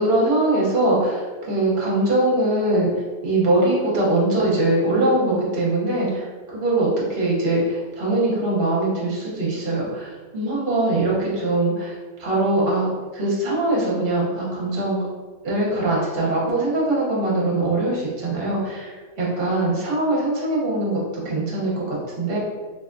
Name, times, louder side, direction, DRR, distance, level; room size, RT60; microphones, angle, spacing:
voice 1, 0.0-2.9 3.2-10.1 10.3-11.9 12.2-12.9 13.1-15.0 15.4-22.4, right 2 dB, 50° right, -5 dB, 1.0 m, -22 dB
3.2 x 2.5 x 2.5 m, 1.4 s
omnidirectional pair, 1.4 m